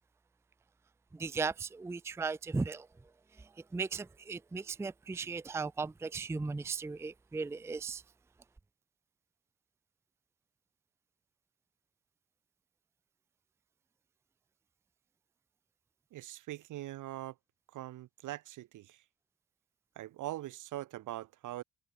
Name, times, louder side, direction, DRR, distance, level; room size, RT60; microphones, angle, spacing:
voice 1, 1.1-2.9 3.7-8.0, right 4 dB, 10° right, 0.4 m, -36 dB
voice 2, 16.1-17.3 17.7-19.0 19.9-21.6, right 15 dB, 85° right, 3.2 m, -42 dB
cardioid pair, 90°, 30 cm